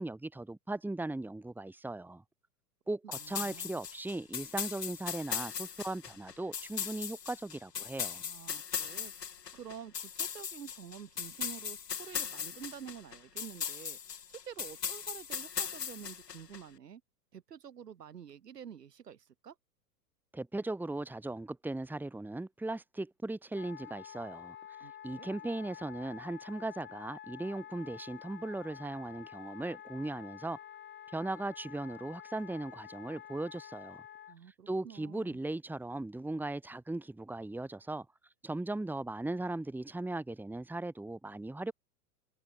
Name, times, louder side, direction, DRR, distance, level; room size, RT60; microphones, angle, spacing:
voice 1, 0.0-2.2 2.9-8.2 20.3-24.6 25.0-30.6 31.1-34.0 34.7-38.1 38.4-41.7, right 2 dB, 5° right, 2.6 m, -38 dB
voice 2, 3.0-3.8 8.2-9.1 9.5-14.0 14.3-17.0 17.3-19.6 24.8-25.3 34.3-35.4, right 8 dB, 75° right, 5.3 m, -48 dB
sound 1, 3.1-16.6, left 7 dB, 80° left, 4.4 m, -39 dB
Wind instrument woodwind instrument, 23.5-34.4, left 10 dB, 20° left, 3.1 m, -49 dB
hypercardioid pair, 105°, 48 cm